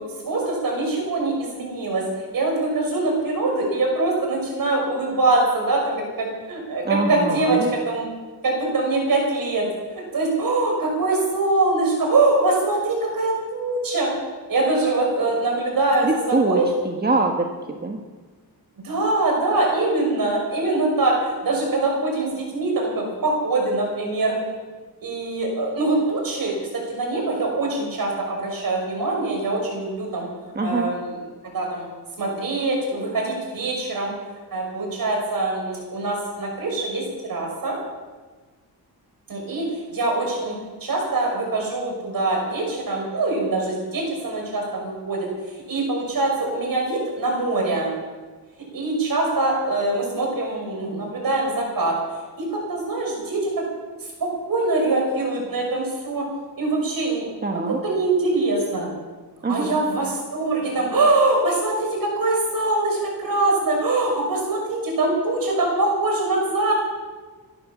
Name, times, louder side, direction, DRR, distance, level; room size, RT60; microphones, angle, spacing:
voice 1, 0.0-2.1 2.3-8.1 8.4-9.7 9.9-14.1 14.5-16.7 18.8-24.3 25.0-30.3 30.6-31.1 31.5-31.9 32.2-34.1 34.5-37.8 39.3-40.5 40.8-45.3 45.5-47.9 48.7-51.9 52.4-53.5 54.2-56.3 56.6-58.9 59.5-66.7, right 2 dB, 60° right, 0 dB, 6.2 m, -23 dB
voice 2, 6.8-7.7 16.0-18.0 30.5-30.9 57.4-57.8 59.4-59.7, right 3 dB, 25° right, 2 dB, 1.4 m, -24 dB
16.0 x 11.5 x 7.3 m, 1.4 s
wide cardioid pair, 120°, 39 cm